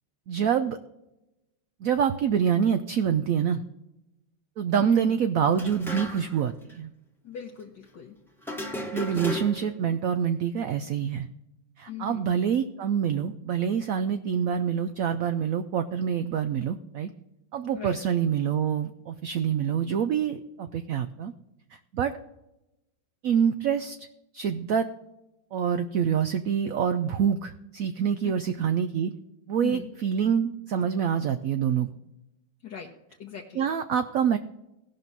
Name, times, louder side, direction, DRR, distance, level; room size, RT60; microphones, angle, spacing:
voice 1, 0.3-0.8 1.8-3.6 4.6-6.9 8.9-11.3 11.8-17.1 17.5-21.3 21.9-22.1 23.2-24.1 24.3-24.9 25.5-29.1 29.5-31.9 33.5-34.4, right 8 dB, 75° right, 9 dB, 0.8 m, -26 dB
voice 2, 4.8-5.1 7.2-8.2 11.9-12.3 17.7-18.0 28.2-28.7 29.6-29.9 32.6-32.9 33.2-33.6, left 9 dB, 70° left, 0 dB, 1.6 m, -39 dB
sound 1, 5.5-6.4 6.7-6.8 8.4-9.8, left 1 dB, ahead, 0.9 m, -34 dB
17.5 x 5.9 x 4.0 m, 0.92 s
omnidirectional pair, 2.0 m